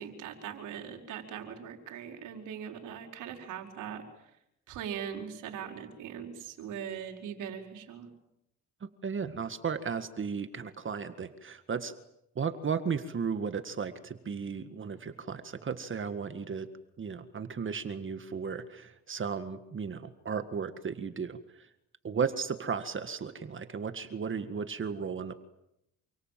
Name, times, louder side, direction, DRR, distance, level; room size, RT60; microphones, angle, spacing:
voice 1, 0.0-4.0 4.7-8.1, right 8 dB, 90° right, 3 dB, 4.9 m, -40 dB
voice 2, 9.0-11.9 12.4-16.7 17.0-21.7 22.0-25.3, right 6 dB, 40° right, 10 dB, 1.9 m, -35 dB
28.5 x 26.0 x 7.6 m, 0.83 s
cardioid pair, 90°, 30 cm